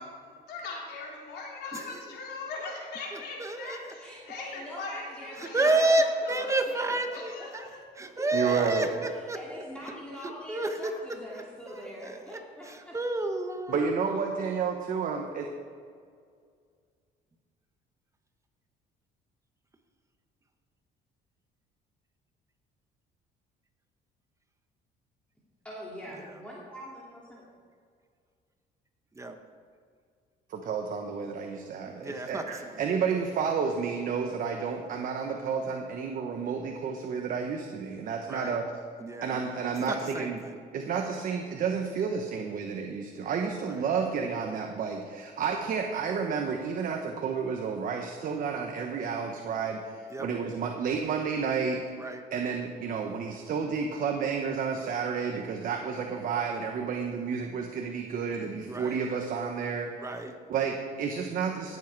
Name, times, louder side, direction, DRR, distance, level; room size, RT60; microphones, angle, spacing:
voice 1, 0.0-5.8 6.2-6.5 7.1-7.8, left 3 dB, 75° left, -2 dB, 3.6 m, -40 dB
voice 2, 3.1-3.8 5.4-7.7 7.9-9.4 10.2-10.9 11.3-13.9 26.2-26.4 29.1-29.4 32.0-32.8 38.2-38.6 39.0-39.4 39.9-40.6 43.7-43.8 50.1-50.3 52.0-52.2 58.7-59.0 60.0-60.3, right 2 dB, 15° right, 6 dB, 1.1 m, -31 dB
voice 3, 4.0-6.9 7.1-7.8 8.2-13.0 25.6-27.4, equal, 5° left, -6 dB, 2.4 m, -44 dB
voice 4, 8.3-8.9 13.7-15.5 30.5-38.6 39.2-40.4 40.7-49.8 50.2-51.8 52.3-59.9 60.5-61.8, right 6 dB, 55° right, 3 dB, 1.1 m, -31 dB
17.5 x 7.5 x 4.7 m, 2.1 s
cardioid pair, 110°, 17 cm